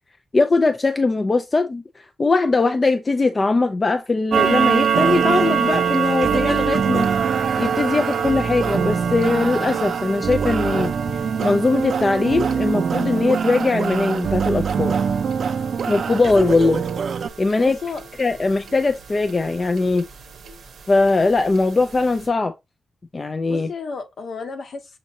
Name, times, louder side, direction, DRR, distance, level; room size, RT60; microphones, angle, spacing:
voice 1, 0.3-7.1 7.6-10.9 11.4-15.0 15.9-16.8 17.4-17.8 18.2-20.1 20.9-22.5 23.1-23.7, left 3 dB, 30° left, 0.4 m, -20 dB
sound 1, 4.3-19.4 19.8-20.0 20.5-20.6 21.0-21.1 21.6-21.7 21.9-22.1, right 7 dB, 80° right, 0.7 m, -26 dB
sound 2, 4.9-17.3, right 6 dB, 65° right, 0.3 m, -24 dB
voice 2, 17.6-18.0 23.4-25.0, left 4 dB, 65° left, 1.0 m, -32 dB
6.3 x 2.9 x 2.6 m
cardioid pair, 100°, 0 cm